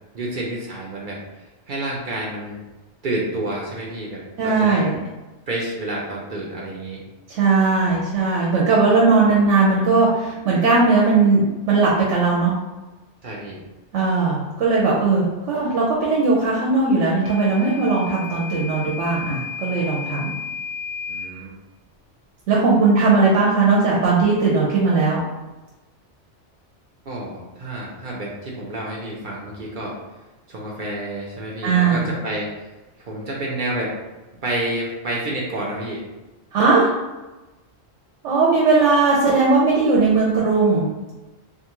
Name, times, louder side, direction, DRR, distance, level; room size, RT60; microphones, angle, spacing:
voice 1, 0.1-2.6 3.0-4.9 5.5-7.0 13.2-13.6 21.1-21.5 27.1-30.0 30.5-32.5 33.0-34.0 34.4-36.1, right 1 dB, 55° right, -3 dB, 0.6 m, -29 dB
voice 2, 4.4-4.9 7.3-12.5 13.9-20.4 22.5-25.2 31.6-32.1 36.5-36.9 38.2-40.9, right 3 dB, 85° right, -4 dB, 1.0 m, -18 dB
Microwave oven / Alarm, 17.2-21.3, left 5 dB, 30° right, 0.9 m, -33 dB
2.5 x 2.4 x 2.9 m, 1.1 s
omnidirectional pair, 1.2 m